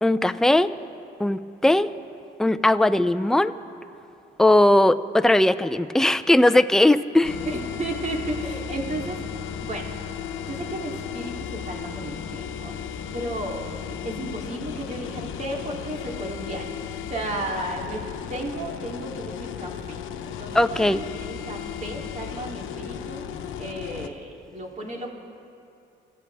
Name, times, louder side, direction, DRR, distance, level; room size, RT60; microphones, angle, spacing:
voice 1, 0.0-0.7 1.2-1.9 2.4-3.5 4.4-7.4 20.5-21.0, left 1 dB, 5° left, 11 dB, 0.5 m, -19 dB
sound 1, 7.2-24.1, left 8 dB, 85° left, 0.9 m, -35 dB
voice 2, 7.4-9.2 9.6-9.9 10.4-18.0 18.3-20.0 20.2-25.1, right 1 dB, 40° right, -1 dB, 3.0 m, -34 dB
27.5 x 14.0 x 3.5 m, 2.6 s
cardioid pair, 90°, 20 cm